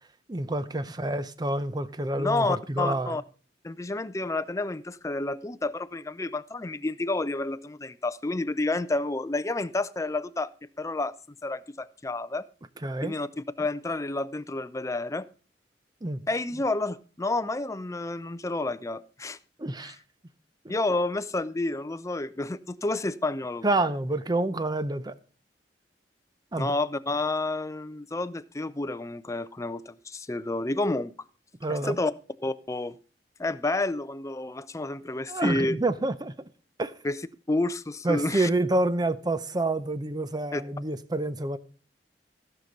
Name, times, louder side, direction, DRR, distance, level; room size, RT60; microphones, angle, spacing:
voice 1, 0.3-3.2 12.8-13.2 16.0-16.2 19.6-20.0 23.6-25.1 26.5-26.7 31.6-32.0 35.3-36.3 36.8-36.9 38.0-41.6, right 2 dB, 25° right, 0.6 m, -28 dB
voice 2, 2.2-3.2 3.6-10.5 10.8-11.1 11.4-12.5 13.0-13.3 13.6-15.3 16.3-19.4 19.8-19.9 20.7-23.6 26.6-31.1 31.7-32.1 32.4-33.0 33.4-35.8 37.0-37.2 37.5-38.5 40.5-40.6, left 2 dB, 20° left, 0.5 m, -30 dB
15.5 x 5.9 x 5.3 m
head